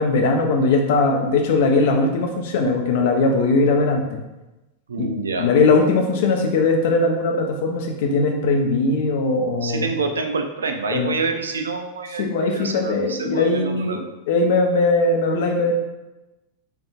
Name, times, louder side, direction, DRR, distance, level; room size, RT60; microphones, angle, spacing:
voice 1, 0.0-4.2 5.0-5.1 5.4-9.9 10.9-11.1 12.2-15.7, left 3 dB, 50° left, 2 dB, 0.6 m, -20 dB
voice 2, 4.9-5.5 9.6-14.0, right 4 dB, 70° right, 5 dB, 0.4 m, -27 dB
4.6 x 2.4 x 2.4 m, 1.0 s
figure-of-eight pair, 90°, 0 cm